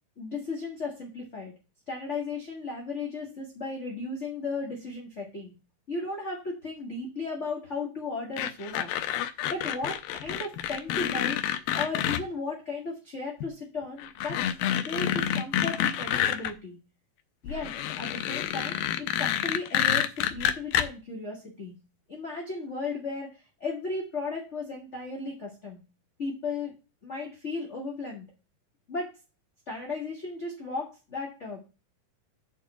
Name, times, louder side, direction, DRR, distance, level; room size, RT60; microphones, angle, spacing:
voice 1, 0.2-1.5 1.9-5.5 5.9-8.9 9.5-11.4 11.7-14.4 14.8-16.8 17.4-21.7 22.1-25.8 26.2-26.7 27.0-28.2 28.9-29.2 29.7-31.6, left 3 dB, 35° left, -1 dB, 1.2 m, -35 dB
sound 1, 8.4-12.2 13.4-13.5 14.0-16.5 17.5-20.9, left 10 dB, 90° left, 2.4 m, -28 dB
7.3 x 4.6 x 5.7 m, 0.30 s
omnidirectional pair, 4.0 m